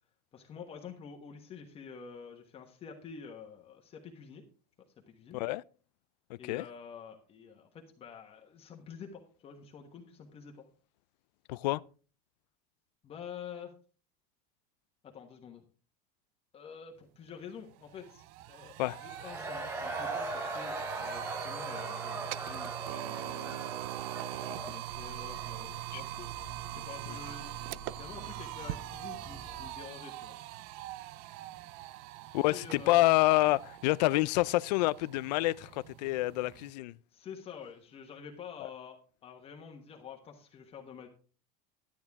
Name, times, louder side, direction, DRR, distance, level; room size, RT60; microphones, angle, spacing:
voice 1, 0.3-4.4 5.1-5.4 6.4-10.6 13.0-13.7 15.0-15.6 16.5-18.7 19.0-23.6 24.3-26.3 26.7-27.5 28.0-30.4 32.5-33.0 37.1-41.1, left 7 dB, 30° left, 1.3 m, -48 dB
voice 2, 6.3-6.7 11.5-11.8 18.8-19.0 25.9-26.0 27.1-27.2 32.3-37.0 38.6-38.7, left 19 dB, 90° left, 0.4 m, -28 dB
sound 1, 17.3-17.4 17.7-36.7, right 16 dB, 50° right, 0.4 m, -42 dB
Cheering / Crowd, 18.9-25.7, right 2 dB, 10° right, 1.0 m, -40 dB
sound 2, 24.8-30.0, right 2 dB, 85° right, 5.9 m, -50 dB
12.0 x 9.2 x 3.5 m
supercardioid pair, 155°, 21 cm